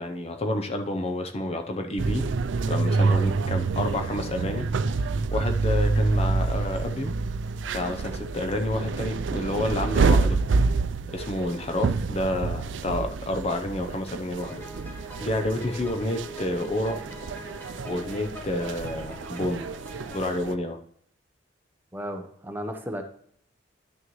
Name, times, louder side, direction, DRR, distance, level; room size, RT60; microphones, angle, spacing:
voice 1, 0.0-2.2 2.7-4.6 5.3-7.1 7.7-10.4 11.1-14.6 15.2-17.0 17.8-19.6 20.1-20.8, left 1 dB, 35° left, 5 dB, 0.7 m, -29 dB
sound 1, 2.0-20.6, right 4 dB, 85° right, 0.4 m, -27 dB
sound 2, 14.4-20.2, equal, 10° left, 1.5 m, -42 dB
voice 2, 21.9-23.0, equal, 10° right, 5 dB, 0.8 m, -34 dB
11.0 x 6.4 x 3.1 m, 0.64 s
head